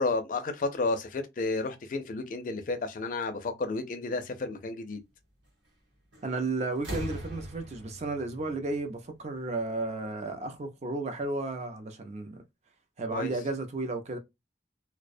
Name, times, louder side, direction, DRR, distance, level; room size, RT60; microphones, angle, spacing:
voice 1, 0.0-5.0 13.1-13.3, left 3 dB, 45° left, 0.4 m, -31 dB
sound 1, 6.1-6.4 6.7-9.5 10.6-10.7, equal, 85° right, 1.0 m, -41 dB
voice 2, 6.2-12.4 13.0-14.2, right 3 dB, 35° right, 0.4 m, -33 dB
2.3 x 2.1 x 2.5 m
head